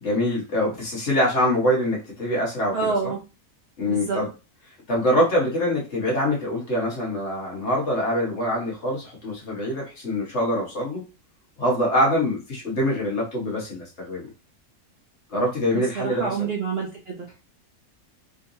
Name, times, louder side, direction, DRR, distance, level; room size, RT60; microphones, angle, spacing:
voice 1, 0.0-3.1 3.8-4.3 4.9-11.0 11.6-14.3 15.3-16.4, equal, 50° left, -3 dB, 1.6 m, -24 dB
voice 2, 2.7-3.2 3.8-4.2 15.9-17.3, right 5 dB, 50° right, -2 dB, 0.9 m, -27 dB
3.8 x 3.3 x 2.7 m, 0.31 s
omnidirectional pair, 1.6 m